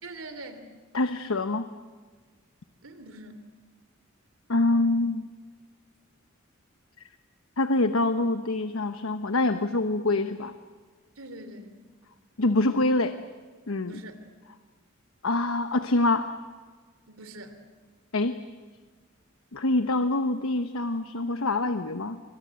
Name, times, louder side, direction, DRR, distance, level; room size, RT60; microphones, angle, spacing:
voice 1, 0.0-0.7 2.8-3.4 11.2-11.7 13.9-14.1 17.1-17.6, right 2 dB, 85° right, 9 dB, 3.1 m, -43 dB
voice 2, 0.9-1.7 4.5-5.3 7.6-10.5 12.4-13.1 13.7-14.0 15.2-16.3 18.1-18.4 19.5-22.2, left 2 dB, 85° left, 9 dB, 1.1 m, -25 dB
30.0 x 25.0 x 7.8 m, 1.5 s
head